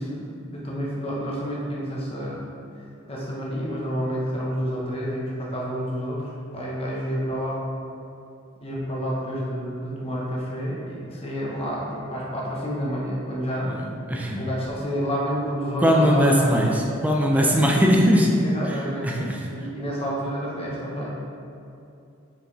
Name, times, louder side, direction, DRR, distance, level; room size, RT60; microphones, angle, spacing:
voice 1, 0.0-2.4 3.1-6.2 6.5-7.7 8.6-13.7 14.4-16.6 18.4-19.1 19.5-21.1, equal, 30° left, -5 dB, 1.1 m, -29 dB
voice 2, 13.6-14.5 15.8-19.5, equal, 5° right, -1 dB, 0.6 m, -21 dB
6.5 x 5.0 x 4.0 m, 2.7 s
head